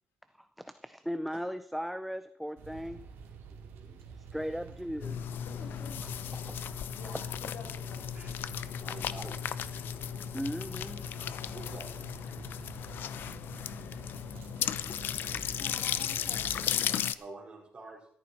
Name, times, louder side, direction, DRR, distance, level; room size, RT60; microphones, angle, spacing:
voice 1, 0.4-3.0 4.1-5.2 6.0-6.8 7.1-7.2 10.3-11.1, equal, ahead, 11 dB, 0.5 m, -38 dB
sound 1, 2.6-16.7, right 6 dB, 85° right, 2.7 m, -49 dB
voice 2, 3.5-4.0 8.1-8.4 8.8-9.4 11.5-11.9 17.2-18.1, right 3 dB, 25° right, -1 dB, 5.1 m, -47 dB
sound 2, 5.0-17.2, left 9 dB, 60° left, 0.6 m, -35 dB
voice 3, 5.5-6.0 6.9-8.5 15.1-16.7, left 4 dB, 85° left, 2 dB, 3.6 m, -49 dB
13.5 x 13.5 x 4.4 m, 0.66 s
cardioid pair, 135°, 4 cm